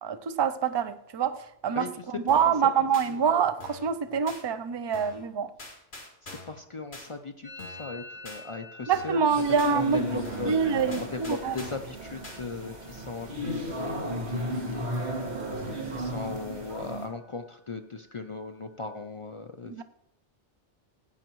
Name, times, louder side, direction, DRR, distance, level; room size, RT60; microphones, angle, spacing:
voice 1, 0.0-5.5 8.9-10.1 10.5-11.6 19.7-19.8, right 6 dB, 45° right, 0.3 m, -26 dB
sound 1, 2.3-2.6 2.9-3.1 3.6-3.9 4.3-4.4 4.9-5.3 5.6-6.6 6.9-7.1 7.6-7.9 8.3-8.4 8.9-9.2 9.6-9.7 10.2-10.6 10.9-11.9 12.2-12.4, left 3 dB, 60° left, 2.3 m, -44 dB
voice 2, 6.2-9.2 9.7-10.5 11.0-14.9 15.5-19.8, left 3 dB, 45° left, 0.4 m, -38 dB
Musical instrument, 7.4-15.1 15.3-15.9 16.2-16.8 17.0-19.1, left 2 dB, 5° left, 3.0 m, -52 dB
sound 2, 9.3-17.1, right 1 dB, 65° right, 2.4 m, -34 dB
16.5 x 8.9 x 3.1 m
omnidirectional pair, 1.2 m